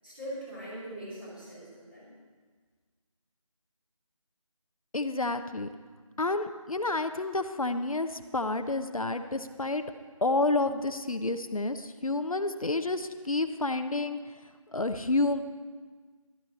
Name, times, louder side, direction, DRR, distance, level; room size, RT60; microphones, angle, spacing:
voice 1, 0.0-2.1, right 1 dB, 20° right, -9 dB, 3.8 m, -41 dB
voice 2, 4.9-5.7 6.2-9.8 10.2-14.2 14.7-15.4, left 2 dB, 75° left, 8 dB, 0.8 m, -29 dB
13.0 x 12.0 x 4.2 m, 1.5 s
figure-of-eight pair, 170°, 18 cm